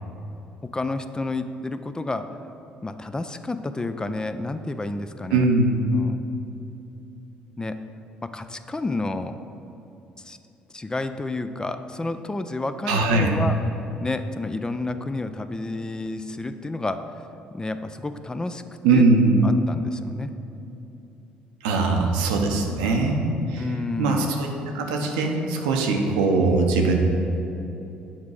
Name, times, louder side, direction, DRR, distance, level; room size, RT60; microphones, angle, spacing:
voice 1, 0.6-2.3 2.8-5.4 5.8-6.2 7.6-7.8 8.2-9.4 10.2-10.4 10.7-13.6 14.0-17.0 17.5-18.6 18.9-19.0 19.4-20.3 23.6-24.3, left 2 dB, 20° left, 10 dB, 0.4 m, -30 dB
voice 2, 5.3-5.9 12.9-13.3 18.8-19.4 21.6-23.6 24.0-24.5 24.7-26.9, right 3 dB, 85° right, 2 dB, 0.7 m, -21 dB
7.3 x 3.6 x 4.8 m, 3.0 s
hypercardioid pair, 60°, 4 cm